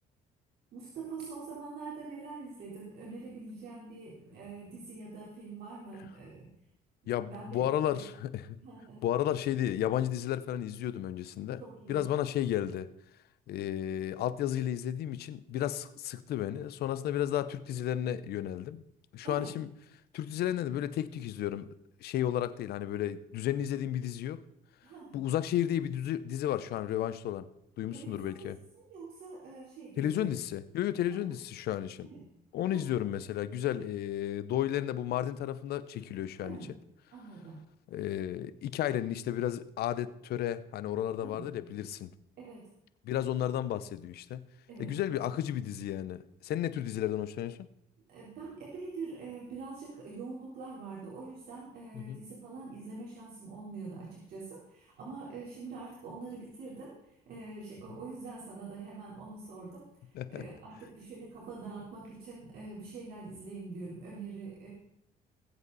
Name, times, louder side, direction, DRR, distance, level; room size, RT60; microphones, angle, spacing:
voice 1, 0.7-6.5 7.2-8.0 8.5-9.0 11.6-12.0 19.2-19.5 24.8-25.2 27.9-30.3 31.1-31.2 32.0-32.2 32.7-33.0 36.4-36.7 37.1-37.6 41.2-41.5 42.4-42.7 44.7-45.0 48.1-64.7, right 4 dB, 65° right, 4.0 m, -44 dB
voice 2, 7.1-8.6 9.0-11.6 11.9-12.9 13.5-18.8 19.1-19.7 20.1-21.7 22.0-24.4 25.1-27.5 27.8-28.6 30.0-32.1 32.5-36.6 37.9-42.1 43.0-44.4 44.8-47.7 51.9-52.2 60.1-60.4, left 11 dB, 70° left, 0.8 m, -33 dB
20.5 x 8.1 x 4.1 m
cardioid pair, 110°, 17 cm